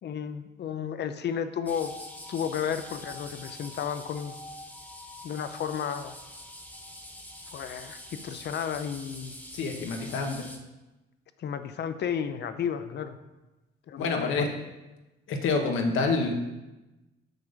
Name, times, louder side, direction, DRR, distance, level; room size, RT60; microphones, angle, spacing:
voice 1, 0.0-1.9 2.3-4.3 5.2-6.1 7.5-9.4 11.4-13.2 13.9-14.5, left 8 dB, 60° left, 11 dB, 0.7 m, -33 dB
sound 1, 1.7-10.6, left 1 dB, 5° left, 1.2 m, -44 dB
voice 2, 9.5-10.4 14.0-14.5 15.3-16.4, left 4 dB, 85° left, 3 dB, 1.2 m, -27 dB
6.5 x 6.1 x 5.2 m, 1.1 s
cardioid pair, 90°, 20 cm